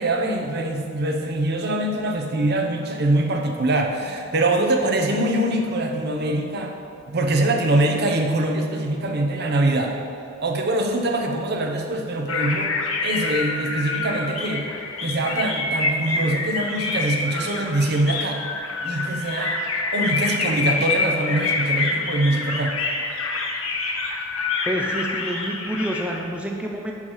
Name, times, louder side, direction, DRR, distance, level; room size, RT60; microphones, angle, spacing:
voice 1, 0.0-6.7 7.1-9.9 10.4-12.7 13.0-14.6 15.0-18.4 18.8-19.6 19.9-22.7, right 1 dB, 50° right, 2 dB, 0.8 m, -23 dB
sound 1, 12.3-26.2, left 3 dB, 75° left, 0.8 m, -26 dB
voice 2, 24.7-26.9, right 1 dB, 5° right, 0 dB, 0.4 m, -28 dB
9.5 x 3.2 x 6.2 m, 2.6 s
head